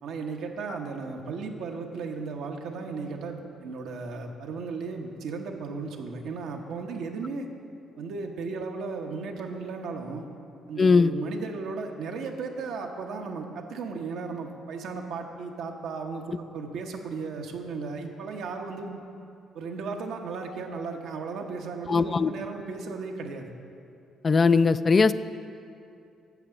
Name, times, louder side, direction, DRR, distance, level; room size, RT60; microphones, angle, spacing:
voice 1, 0.0-7.5 8.0-10.2 10.7-19.0 19.5-23.5, right 4 dB, 75° right, 2 dB, 0.9 m, -35 dB
voice 2, 10.8-11.1 21.9-22.3 24.2-25.1, left 4 dB, 40° left, 13 dB, 0.3 m, -19 dB
8.1 x 6.8 x 7.1 m, 2.6 s
supercardioid pair, 70°, 0 cm